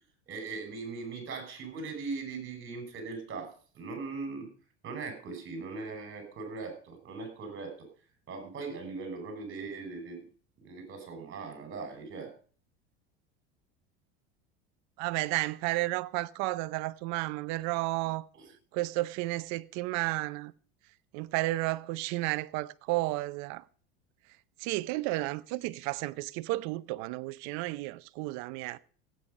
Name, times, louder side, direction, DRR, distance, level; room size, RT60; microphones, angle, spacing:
voice 1, 0.3-4.5 4.8-7.9 8.3-10.2 10.6-12.3 18.3-18.5, right 4 dB, 40° right, 6.0 m, -40 dB
voice 2, 15.0-18.3 18.7-20.5 21.1-23.6 24.6-28.8, right 19 dB, 60° right, 0.7 m, -32 dB
16.0 x 8.9 x 5.4 m
supercardioid pair, 100°, 32 cm